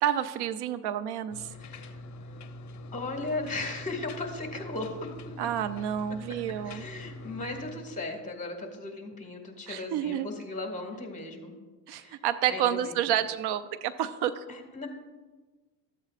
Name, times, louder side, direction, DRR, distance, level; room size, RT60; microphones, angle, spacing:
voice 1, 0.0-1.5 5.4-6.8 9.7-10.3 11.9-14.4, right 10 dB, 70° right, 13 dB, 0.5 m, -29 dB
sound 1, 1.3-7.7, left 1 dB, 45° left, 0.8 m, -44 dB
voice 2, 1.6-1.9 2.9-5.1 6.6-11.5 12.0-12.2 12.5-13.0 14.5-14.9, left 2 dB, 20° left, 2 dB, 1.9 m, -36 dB
13.5 x 8.3 x 2.4 m, 1.3 s
cardioid pair, 95°, 41 cm